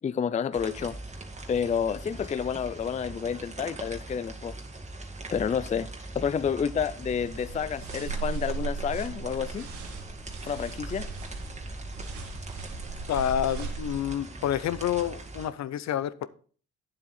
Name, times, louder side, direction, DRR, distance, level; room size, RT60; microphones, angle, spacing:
voice 1, 0.0-1.0 1.5-4.6 5.3-5.9 6.1-9.7 10.4-11.1, left 7 dB, 25° left, 0.4 m, -29 dB
sound 1, 0.5-15.5, right 2 dB, 25° right, 1.9 m, -41 dB
sound 2, 7.0-14.0, right 5 dB, 75° right, 2.5 m, -38 dB
voice 2, 13.1-16.3, left 10 dB, 65° left, 0.7 m, -28 dB
9.2 x 7.5 x 4.2 m
cardioid pair, 90°, 30 cm